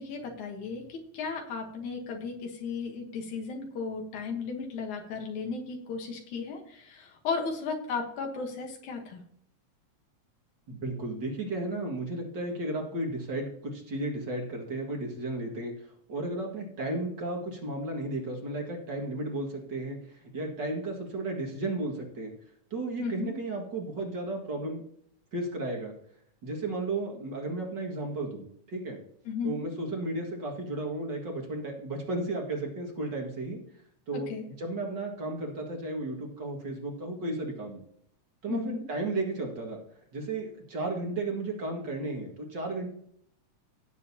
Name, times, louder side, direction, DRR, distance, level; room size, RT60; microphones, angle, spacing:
voice 1, 0.0-9.2 23.0-23.3 29.3-29.6 34.1-34.5 38.5-38.8, left 5 dB, 85° left, 2 dB, 2.8 m, -35 dB
voice 2, 10.7-15.7 16.1-22.3 22.7-24.8 25.3-25.9 26.4-29.0 29.4-33.6 34.1-37.8 38.4-39.8 40.1-42.9, right 2 dB, 40° right, 0 dB, 2.4 m, -34 dB
17.0 x 7.6 x 2.9 m, 0.65 s
omnidirectional pair, 3.3 m